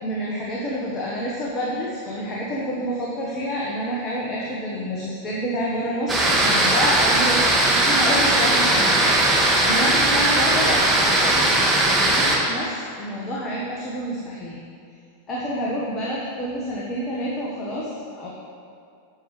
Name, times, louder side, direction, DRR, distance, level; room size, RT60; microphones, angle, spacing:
voice 1, 0.0-11.6 11.9-14.6 15.3-18.3, equal, 25° left, -5 dB, 1.4 m, -28 dB
sound 1, 6.1-12.4, right 1 dB, 15° right, 1.7 m, -19 dB
12.0 x 7.2 x 3.3 m, 2.4 s
figure-of-eight pair, 90°, 0 cm